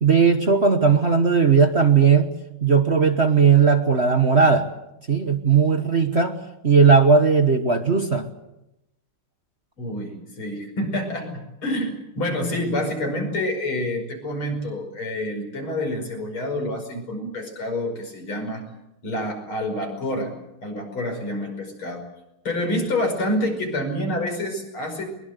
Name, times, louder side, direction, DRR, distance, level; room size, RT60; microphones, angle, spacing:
voice 1, 0.0-2.3 2.6-4.7 5.1-6.4 6.6-8.3, right 5 dB, 35° right, 7 dB, 1.3 m, -17 dB
voice 2, 9.8-18.6 19.0-20.3 20.6-22.0 22.4-25.0, left 1 dB, 75° left, 4 dB, 6.3 m, -27 dB
22.5 x 22.5 x 8.2 m, 0.88 s
omnidirectional pair, 2.3 m